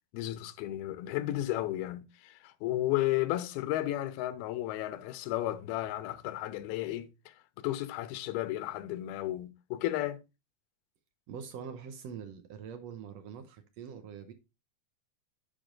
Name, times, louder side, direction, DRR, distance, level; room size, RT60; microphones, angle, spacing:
voice 1, 0.1-10.2, left 15 dB, 85° left, 2.7 m, -33 dB
voice 2, 11.3-14.3, right 7 dB, 85° right, 1.4 m, -44 dB
10.0 x 5.4 x 3.8 m
omnidirectional pair, 4.3 m